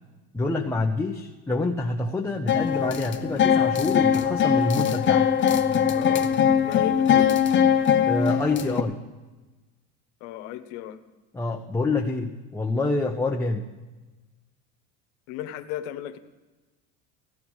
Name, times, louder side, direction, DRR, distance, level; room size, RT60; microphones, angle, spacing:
voice 1, 0.3-5.3 8.1-9.0 11.3-13.7, left 2 dB, 5° left, 0 dB, 0.9 m, -27 dB
sound 1, 2.5-8.8, left 8 dB, 30° left, 0.9 m, -21 dB
voice 2, 5.9-6.3 6.6-7.4 10.2-11.0 15.3-16.2, left 11 dB, 80° left, 8 dB, 1.2 m, -35 dB
16.5 x 11.0 x 4.8 m, 1.2 s
supercardioid pair, 110°, 36 cm